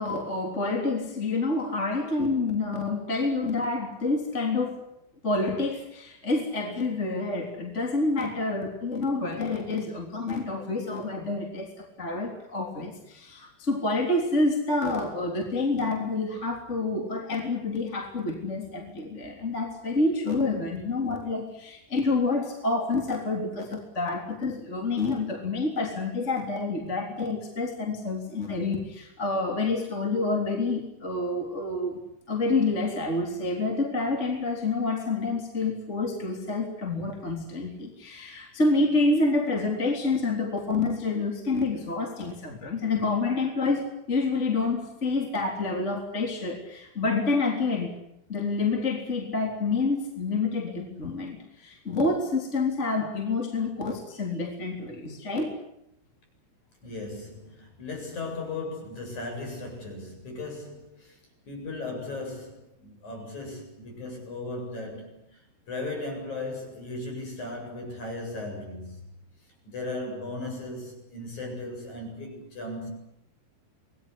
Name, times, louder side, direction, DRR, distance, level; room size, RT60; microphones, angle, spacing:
voice 1, 0.0-4.8 5.2-32.0 32.3-47.9 48.3-55.6, left 3 dB, 15° left, 3.1 m, -28 dB
voice 2, 56.8-61.2 61.5-69.1 69.7-72.9, left 2 dB, 35° left, 9.3 m, -37 dB
27.0 x 20.5 x 10.0 m
omnidirectional pair, 5.6 m